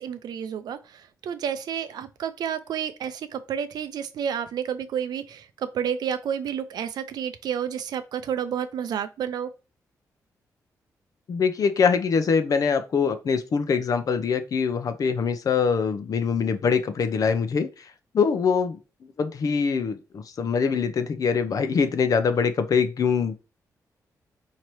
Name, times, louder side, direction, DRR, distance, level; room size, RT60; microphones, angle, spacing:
voice 1, 0.0-9.5, right 8 dB, 80° right, 0.5 m, -30 dB
voice 2, 11.3-17.7 18.1-18.8 19.2-23.3, left 5 dB, 60° left, 0.6 m, -23 dB
4.4 x 2.8 x 3.1 m
cardioid pair, 80°, 7 cm